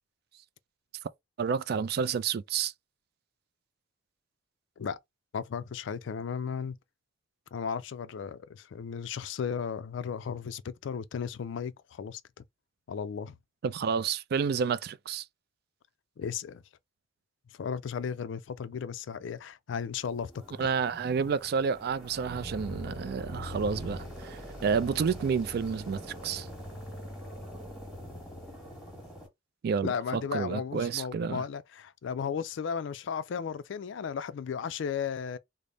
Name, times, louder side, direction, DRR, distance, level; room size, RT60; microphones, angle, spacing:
voice 1, 1.4-2.7 13.6-15.3 20.6-26.5 29.6-31.4, right 6 dB, 50° right, 0.3 m, -30 dB
voice 2, 5.3-6.8 7.5-12.2 12.9-13.4 16.2-16.6 17.6-20.3 20.6-20.7 29.8-35.4, left 6 dB, 70° left, 0.3 m, -35 dB
sound 1, 20.0-29.3, left 1 dB, ahead, 1.5 m, -43 dB
3.3 x 2.0 x 3.8 m
head